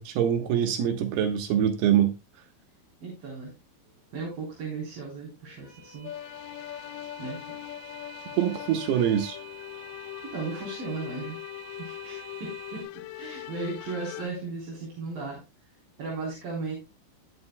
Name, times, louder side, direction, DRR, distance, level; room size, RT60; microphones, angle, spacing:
voice 1, 0.0-2.1 8.4-9.4, right 9 dB, 90° right, 3.3 m, -24 dB
voice 2, 3.0-3.5 4.1-6.1 7.2-7.6 10.3-11.4 11.7-12.9 13.1-15.4 16.0-16.8, right 4 dB, 65° right, 5.4 m, -36 dB
sound 1, 3.9-12.8, right 4 dB, 30° right, 7.3 m, -48 dB
sound 2, 6.0-14.3, left 14 dB, 85° left, 2.6 m, -41 dB
19.5 x 6.9 x 2.2 m
omnidirectional pair, 4.4 m